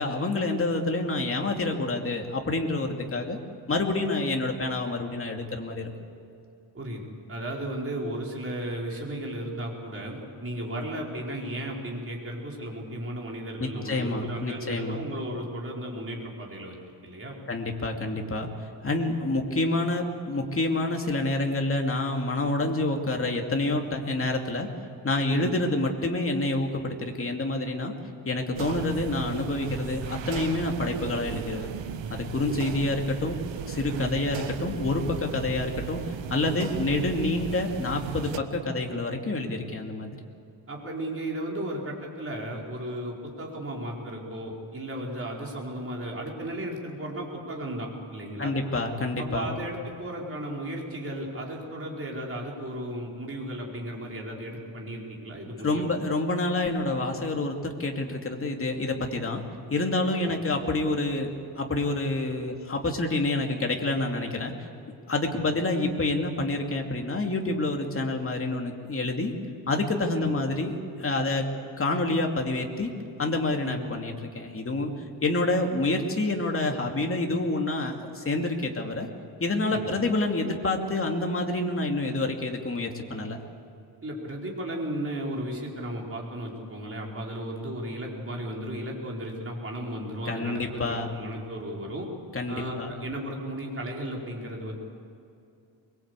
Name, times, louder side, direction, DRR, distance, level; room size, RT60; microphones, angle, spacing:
voice 1, 0.0-3.4 3.7-5.9 13.6-15.0 17.5-18.5 18.8-24.7 25.0-27.9 28.2-31.7 32.1-33.4 33.7-40.2 48.4-49.5 55.6-59.4 59.7-64.5 65.1-69.3 69.7-71.5 71.8-72.9 73.2-74.9 75.2-79.1 79.4-83.4 90.3-91.1 92.3-92.9, left 2 dB, 25° left, 2 dB, 2.6 m, -28 dB
voice 2, 7.3-16.8 17.0-17.4 25.3-25.6 32.5-32.7 33.9-34.2 40.7-48.5 49.2-55.9 60.1-60.4 70.2-70.3 73.6-73.8 79.7-80.0 84.0-92.1 92.5-94.7, right 1 dB, 30° right, -2 dB, 4.8 m, -35 dB
sound 1, 28.5-38.4, right 8 dB, 65° right, 1.3 m, -36 dB
24.0 x 22.0 x 8.3 m, 2.7 s
cardioid pair, 140°, 48 cm